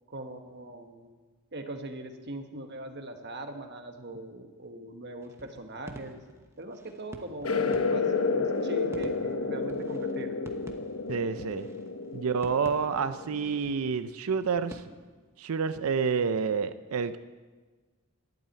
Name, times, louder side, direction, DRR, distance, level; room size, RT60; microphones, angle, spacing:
voice 1, 0.1-1.1 1.5-6.2 6.6-10.4, right 1 dB, 50° right, 5 dB, 1.3 m, -41 dB
sound 1, 5.2-14.8, right 1 dB, 10° right, 1.0 m, -49 dB
sound 2, 7.4-13.6, left 4 dB, 75° left, 0.9 m, -31 dB
voice 2, 11.1-11.7 12.1-14.8 15.4-17.2, right 5 dB, 85° right, 12 dB, 0.5 m, -29 dB
12.0 x 8.3 x 9.0 m, 1.3 s
head